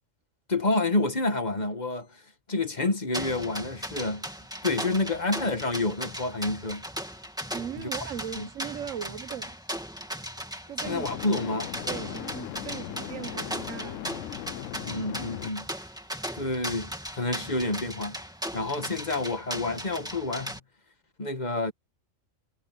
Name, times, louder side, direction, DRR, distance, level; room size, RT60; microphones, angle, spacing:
voice 1, 0.5-2.1 2.5-4.3 4.6-6.8 7.8-7.9 8.3-8.5 10.9-11.7 12.0-12.1 14.8-15.7 16.3-18.2 18.5-20.6 21.2-21.7, left 2 dB, 35° left, 1.5 m, -28 dB
sound 1, 3.1-20.6, equal, 5° right, 2.5 m, -37 dB
sound 2, 6.0-6.1 10.8-15.5, left 13 dB, 80° left, 1.0 m, -38 dB
voice 2, 7.5-9.6 10.7-11.5 11.9-14.1, right 9 dB, 80° right, 1.2 m, -38 dB
omnidirectional pair, 1.3 m